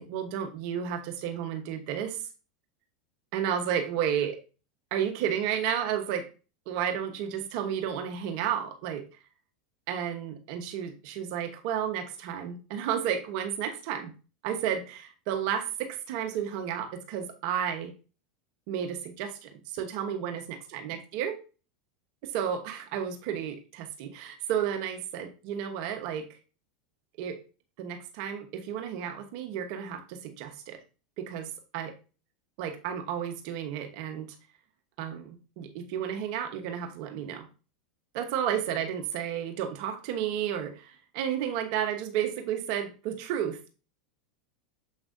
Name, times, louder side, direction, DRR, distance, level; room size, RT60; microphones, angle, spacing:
voice 1, 0.0-2.2 3.3-4.4 4.9-6.3 6.7-9.1 9.9-14.1 14.4-17.9 18.7-21.4 22.2-26.4 27.2-27.4 27.8-30.8 31.2-31.9 32.6-34.3 35.0-37.5 38.1-43.6, right 9 dB, 60° right, 6 dB, 1.2 m, -32 dB
7.4 x 5.3 x 2.7 m, 0.33 s
hypercardioid pair, 100°, 4 cm